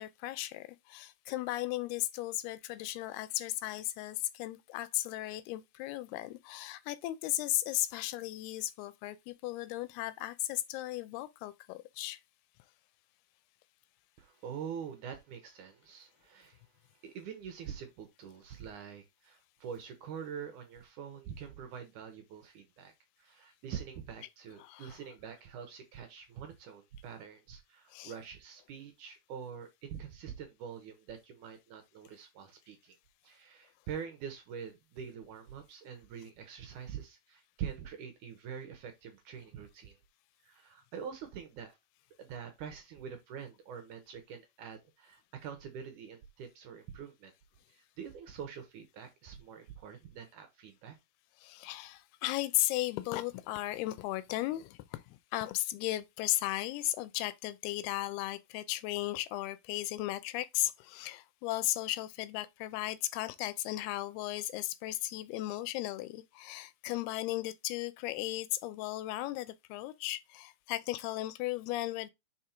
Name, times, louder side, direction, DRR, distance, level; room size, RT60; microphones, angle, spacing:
voice 1, 0.0-12.2 24.6-25.0 27.9-28.1 51.4-55.0 55.3-72.1, left 16 dB, 90° left, 2.6 m, -36 dB
voice 2, 14.2-16.6 17.0-22.9 23.2-33.0 33.2-40.0 40.4-41.8 42.2-47.3 47.7-51.0, right 7 dB, 70° right, 2.1 m, -45 dB
5.3 x 4.8 x 4.4 m
omnidirectional pair, 4.4 m